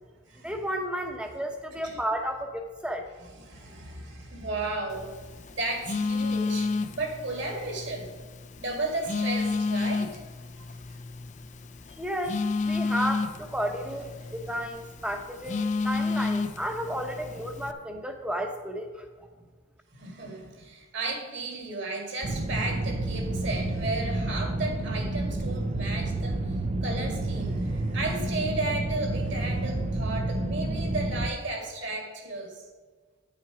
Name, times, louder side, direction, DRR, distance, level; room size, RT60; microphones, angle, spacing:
voice 1, 0.4-3.0 12.0-12.4 12.6-19.3, equal, 5° right, 4 dB, 0.8 m, -32 dB
voice 2, 3.2-5.1 5.5-8.1 8.6-10.2 10.6-10.8 14.2-14.3 19.9-26.6 26.8-32.7, right 2 dB, 55° right, 1 dB, 2.1 m, -34 dB
Telephone, 4.9-17.7, left 4 dB, 35° left, 0.4 m, -32 dB
sound 1, 22.2-31.3, right 2 dB, 30° right, 0.4 m, -30 dB
9.8 x 5.9 x 4.9 m, 1.4 s
head